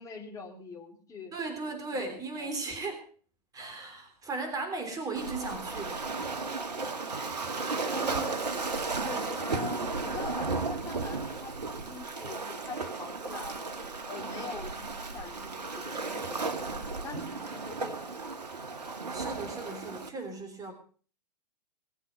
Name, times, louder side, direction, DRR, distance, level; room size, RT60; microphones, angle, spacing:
voice 1, 0.0-1.3 1.9-2.5 6.8-7.1 7.9-8.3 9.0-13.7 14.1-18.1, left 4 dB, 15° left, 1 dB, 3.5 m, -44 dB
voice 2, 1.3-3.0 3.5-6.0 19.1-20.7, right 3 dB, 15° right, 6 dB, 3.3 m, -36 dB
Waves surf, 5.2-20.1, right 3 dB, 75° right, 1.9 m, -34 dB
20.0 x 8.0 x 6.7 m, 0.42 s
figure-of-eight pair, 110°, 21 cm